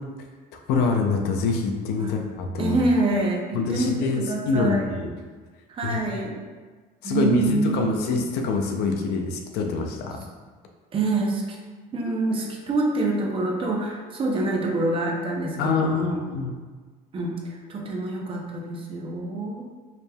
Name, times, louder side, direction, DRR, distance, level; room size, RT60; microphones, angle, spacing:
voice 1, 0.5-2.8 3.5-5.1 5.8-6.0 7.0-10.2 15.6-16.5, left 3 dB, 80° left, 3 dB, 0.6 m, -25 dB
voice 2, 2.6-4.9 5.7-6.4 7.0-8.0 10.9-11.4 11.9-16.2 17.1-19.7, right 2 dB, 35° right, 0 dB, 0.7 m, -26 dB
4.8 x 3.3 x 2.3 m, 1.4 s
cardioid pair, 145°, 16 cm